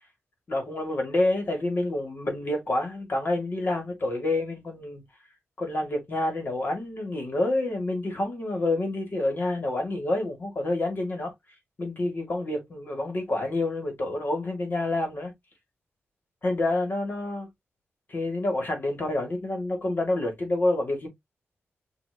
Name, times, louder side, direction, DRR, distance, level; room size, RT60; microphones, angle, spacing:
voice 1, 0.5-5.0 5.6-11.3 11.8-15.3 16.4-17.5 18.1-21.1, left 2 dB, 45° left, 2.1 m, -28 dB
6.0 x 2.8 x 2.8 m
wide cardioid pair, 130°, 5 cm